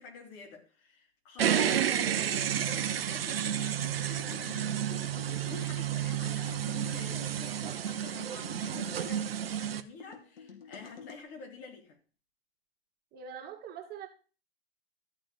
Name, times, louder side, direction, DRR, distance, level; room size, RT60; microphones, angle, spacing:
voice 1, 0.0-4.8 5.3-12.0, left 4 dB, 40° left, 3.4 m, -48 dB
sound 1, 1.4-9.8, right 9 dB, 70° right, 1.0 m, -31 dB
sound 2, 4.2-5.4 6.1-7.4 8.1-9.3 10.0-11.2, left 6 dB, 65° left, 2.8 m, -49 dB
voice 2, 13.1-14.1, right 7 dB, 30° right, 2.3 m, -43 dB
13.0 x 4.9 x 7.5 m
hypercardioid pair, 110°, 31 cm